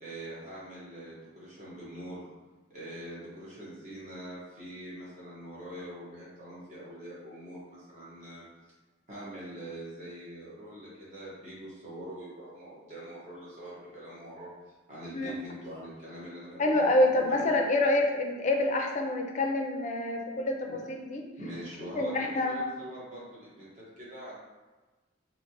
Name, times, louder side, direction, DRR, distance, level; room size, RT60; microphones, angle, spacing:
voice 1, 0.0-2.3 2.7-8.4 9.1-14.5 14.9-16.9 17.1-17.5 20.7-20.8 21.4-24.4, right 1 dB, 40° right, -8 dB, 1.2 m, -43 dB
voice 2, 16.6-21.2 21.9-22.6, left 2 dB, 40° left, 2 dB, 0.4 m, -27 dB
3.1 x 2.8 x 2.9 m, 1.2 s
head